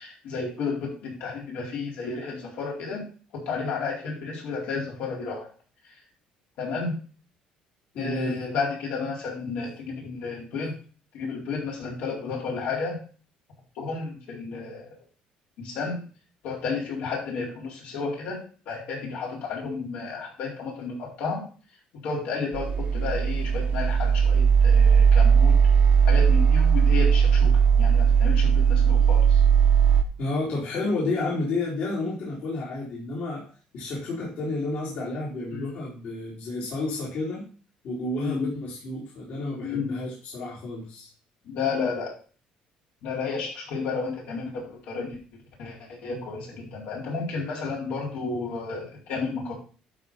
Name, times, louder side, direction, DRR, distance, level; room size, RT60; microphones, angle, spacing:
voice 1, 0.0-3.1 3.3-5.5 6.6-6.9 7.9-10.7 11.1-13.0 13.8-14.9 15.6-16.0 16.4-18.4 18.7-21.4 22.0-25.6 26.1-27.5 27.8-29.4 35.5-35.8 38.2-38.5 39.6-39.9 41.5-42.1 43.0-45.2 45.6-49.5, left 4 dB, 80° left, -2 dB, 4.2 m, -32 dB
voice 2, 7.9-8.4 30.2-33.5 33.7-37.4 37.8-41.1, left 2 dB, 60° left, -5 dB, 3.3 m, -31 dB
sound 1, 22.5-30.0, right 7 dB, 60° right, 1.1 m, -18 dB
11.5 x 4.2 x 5.6 m, 0.40 s
cardioid pair, 130°, 3 cm